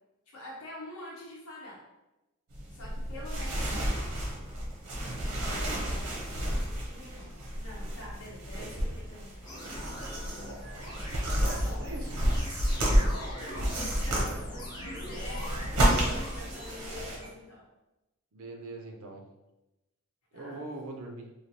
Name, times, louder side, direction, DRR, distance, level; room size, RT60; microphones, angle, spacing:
voice 1, 0.3-1.8 2.7-4.1 6.9-7.3 7.6-9.4 11.4-11.9 13.1-17.7 20.3-20.6, left 1 dB, 75° left, -4 dB, 0.8 m, -46 dB
sound 1, 2.5-17.2, equal, 85° right, 0.9 m, -31 dB
sound 2, 9.5-17.3, equal, 20° left, 0.6 m, -43 dB
voice 2, 11.3-12.1 18.3-19.2 20.3-21.3, right 2 dB, 65° right, 3 dB, 0.4 m, -42 dB
3.2 x 2.3 x 2.7 m, 0.98 s
head